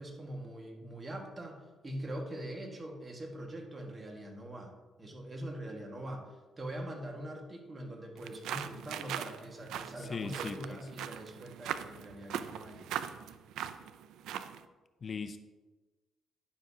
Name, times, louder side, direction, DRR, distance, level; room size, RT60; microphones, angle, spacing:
voice 1, 0.0-4.7 5.0-6.3 6.6-12.9, right 1 dB, 30° right, 1 dB, 1.6 m, -43 dB
sound 1, 8.2-14.6, right 9 dB, 85° right, 0.4 m, -40 dB
voice 2, 10.1-10.8 15.0-15.4, left 5 dB, 45° left, 9 dB, 0.4 m, -38 dB
10.5 x 7.1 x 2.8 m, 1.2 s
cardioid pair, 90°, 0 cm